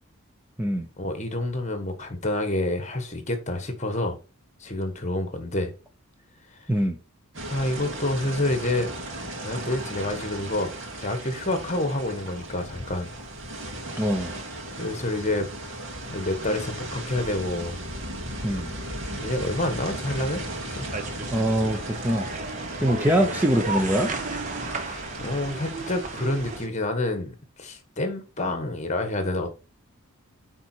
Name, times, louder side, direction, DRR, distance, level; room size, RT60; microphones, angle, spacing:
voice 1, 1.0-4.2 4.6-5.7 7.5-8.9 9.4-10.7 11.0-13.1 14.8-15.5 16.1-17.8 19.2-20.4 20.7-20.9 24.8-29.5, left 1 dB, 30° left, 1.5 m, -28 dB
sound 1, 7.3-26.7, right 1 dB, 60° right, 2.5 m, -36 dB
voice 2, 14.0-14.3 18.4-18.7 21.3-22.3 22.8-24.1, equal, 10° right, 0.7 m, -23 dB
sound 2, 20.1-26.6, right 3 dB, 35° right, 1.0 m, -35 dB
9.1 x 4.2 x 4.5 m
head